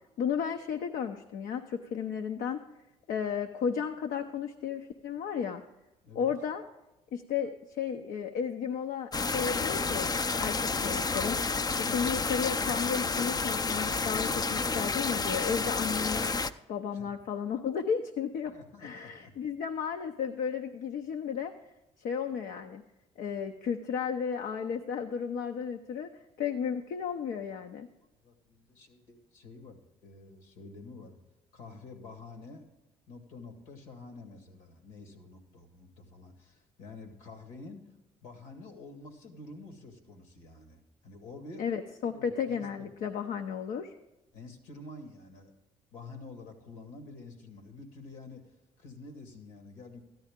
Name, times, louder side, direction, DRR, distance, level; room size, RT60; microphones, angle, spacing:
voice 1, 0.2-2.6 3.1-5.6 6.1-6.6 7.1-10.1 10.4-11.4 11.7-16.4 16.7-18.5 18.8-21.5 22.0-22.8 23.2-26.1 26.4-27.9 41.6-43.9, left 7 dB, 65° left, 5 dB, 0.6 m, -33 dB
sound 1, 9.1-16.5, left 4 dB, 25° left, 0.5 m, -30 dB
voice 2, 11.8-12.2 16.9-17.1 18.5-19.3 28.0-31.2 31.5-32.7 33.1-37.9 38.2-41.6 42.1-42.9 44.3-45.5 45.9-50.0, left 3 dB, 80° left, 6 dB, 1.9 m, -48 dB
13.5 x 10.5 x 3.6 m, 0.99 s
hypercardioid pair, 55°, 15 cm